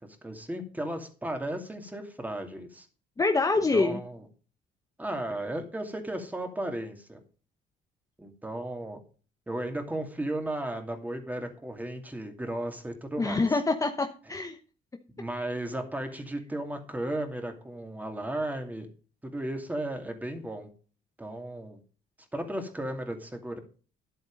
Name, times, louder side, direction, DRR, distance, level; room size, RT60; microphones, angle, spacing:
voice 1, 0.2-2.9 3.7-4.3 5.0-7.2 8.2-9.0 9.5-13.6 14.2-14.4 15.2-18.9 19.2-20.7 21.2-21.8 22.3-23.6, right 1 dB, 10° right, 5 dB, 2.5 m, -35 dB
voice 2, 3.2-4.0 13.2-14.6, left 3 dB, 20° left, 6 dB, 1.0 m, -25 dB
11.0 x 8.1 x 5.2 m, 0.38 s
cardioid pair, 110°, 17 cm